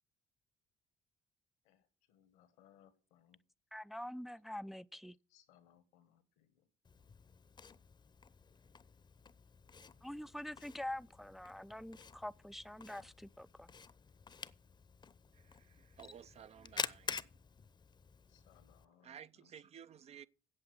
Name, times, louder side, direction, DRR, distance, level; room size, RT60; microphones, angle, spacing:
voice 1, 1.6-3.4 5.3-6.7 18.3-19.5, left 10 dB, 85° left, 1.6 m, -68 dB
voice 2, 3.7-5.2 10.0-13.7, left 1 dB, ahead, 0.5 m, -45 dB
Camera, 6.8-18.8, left 5 dB, 35° left, 0.8 m, -49 dB
voice 3, 15.3-17.4 18.8-20.3, right 9 dB, 50° right, 0.6 m, -55 dB
8.6 x 7.9 x 8.0 m
hypercardioid pair, 55°, 13 cm